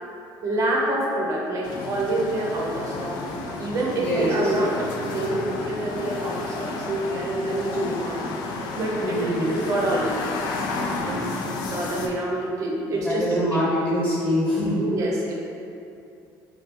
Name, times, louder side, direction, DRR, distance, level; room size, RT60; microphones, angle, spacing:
voice 1, 0.4-3.2 3.6-4.8 5.0-8.2 8.7-13.4 14.8-15.3, right 1 dB, 45° right, -2 dB, 0.7 m, -27 dB
sound 1, 1.6-12.1, left 3 dB, 65° left, 0.4 m, -32 dB
voice 2, 4.0-4.5 9.0-9.5 13.0-14.8, equal, 15° left, -7 dB, 1.1 m, -24 dB
3.3 x 2.3 x 4.3 m, 2.7 s
cardioid pair, 150°, 8 cm